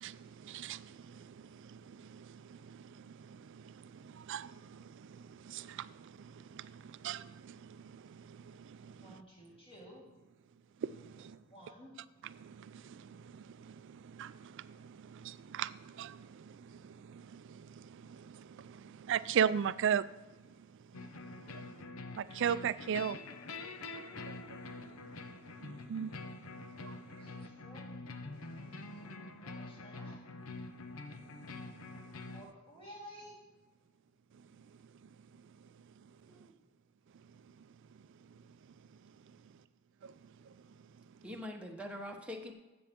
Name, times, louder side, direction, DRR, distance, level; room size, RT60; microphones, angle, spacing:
voice 1, 0.0-9.0 10.8-11.4 12.4-20.1 21.0-21.1 21.4-21.6 22.2-23.2 24.2-25.0 25.6-26.1 26.8-27.0 28.9-29.0 40.0-40.1 40.5-40.6, right 8 dB, 65° right, 17 dB, 0.4 m, -39 dB
voice 2, 9.0-10.1 11.2-12.0 21.6-22.3 27.2-27.9 28.9-30.2 32.3-33.4, equal, 30° left, -5 dB, 3.7 m, -54 dB
sound 1, 20.9-32.4, left 3 dB, 80° left, 0.7 m, -46 dB
voice 3, 41.2-42.5, left 1 dB, 5° right, 0 dB, 1.0 m, -44 dB
15.0 x 7.0 x 3.6 m, 1.2 s
head